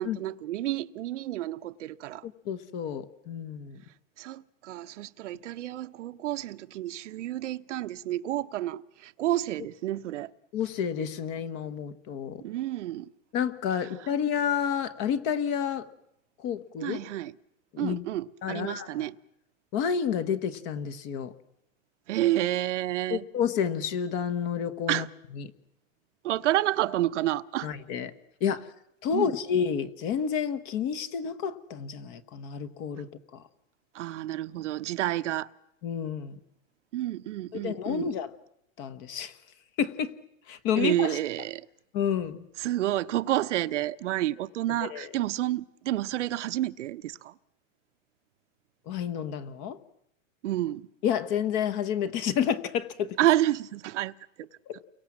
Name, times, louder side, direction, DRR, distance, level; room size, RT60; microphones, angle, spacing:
voice 1, 0.0-2.3 4.2-10.3 12.4-13.1 14.0-14.1 16.8-17.3 17.8-19.2 22.1-23.2 24.9-25.1 26.2-27.7 29.1-29.3 33.9-35.5 36.9-38.1 40.8-41.7 42.6-47.3 50.4-50.9 53.2-54.5, right 14 dB, 60° right, 1.0 m, -30 dB
voice 2, 2.2-3.8 10.5-12.4 13.3-15.9 16.4-17.0 17.7-18.0 18.4-18.9 19.7-21.3 23.1-25.0 25.4-25.5 27.6-28.1 28.4-28.7 29.0-33.4 35.8-36.4 37.5-38.3 38.8-39.3 39.8-40.1 40.5-41.2 41.9-42.5 44.8-45.1 48.9-49.8 51.0-53.2 54.7-54.8, left 8 dB, 30° left, 1.2 m, -30 dB
29.5 x 23.5 x 7.4 m
supercardioid pair, 170°, 40 cm